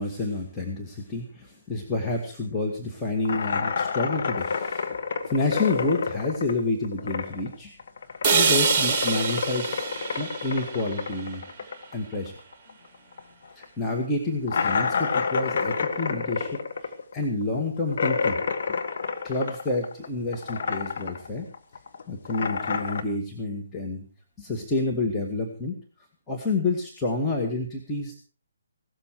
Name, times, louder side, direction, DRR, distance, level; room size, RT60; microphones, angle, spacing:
voice 1, 0.0-4.9 5.3-7.8 8.3-12.3 13.6-18.4 19.2-21.5 22.1-24.0 24.4-25.8 26.3-28.2, left 2 dB, 10° left, -1 dB, 2.0 m, -29 dB
sound 1, 3.2-7.5 7.8-12.9 13.1-13.2 13.6-13.7 14.5-20.1 20.3-21.3 21.5-23.0, left 5 dB, 50° left, 1.7 m, -29 dB
sound 2, 8.2-12.3, right 5 dB, 20° right, 2.4 m, -26 dB
17.0 x 13.5 x 4.8 m, 0.37 s
figure-of-eight pair, 140°, 0 cm